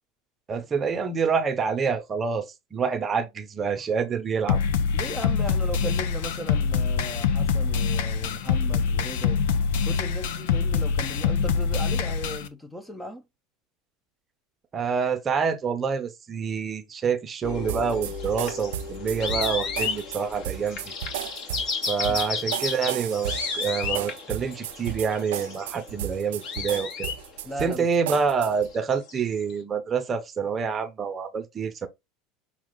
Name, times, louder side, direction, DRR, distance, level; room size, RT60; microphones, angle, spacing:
voice 1, 0.5-4.6 14.7-20.9 21.9-27.1 27.6-31.9, right 6 dB, 30° right, 0.8 m, -27 dB
sound 1, 4.5-12.5, left 6 dB, 80° left, 0.6 m, -25 dB
voice 2, 4.9-9.4 9.8-13.2 22.1-22.2 27.4-27.9, equal, 10° left, 0.6 m, -36 dB
sound 2, 17.4-27.7 28.7-29.5, left 5 dB, 55° left, 1.5 m, -33 dB
sound 3, 17.7-28.7, right 12 dB, 85° right, 0.4 m, -35 dB
5.9 x 2.3 x 3.8 m
supercardioid pair, 110°, 0 cm